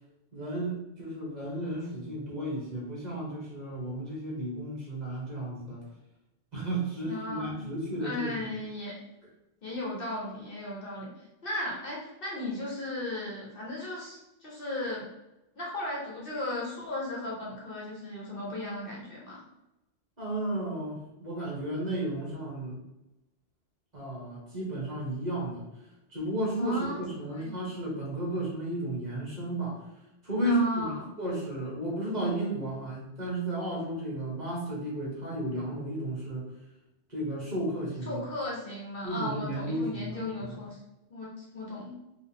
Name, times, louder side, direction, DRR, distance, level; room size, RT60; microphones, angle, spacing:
voice 1, 0.3-5.8 6.5-8.3 20.2-22.8 23.9-25.7 26.1-29.9 30.2-36.4 37.1-38.2 39.0-40.6, right 1 dB, 35° right, -6 dB, 1.5 m, -33 dB
voice 2, 7.0-7.6 8.0-9.0 9.6-11.1 11.4-15.1 15.6-19.4 26.6-27.0 27.4-27.5 30.4-31.0 38.1-40.8 41.1-41.9, left 2 dB, 50° left, -4 dB, 1.0 m, -36 dB
4.0 x 2.5 x 3.5 m, 0.93 s
omnidirectional pair, 1.2 m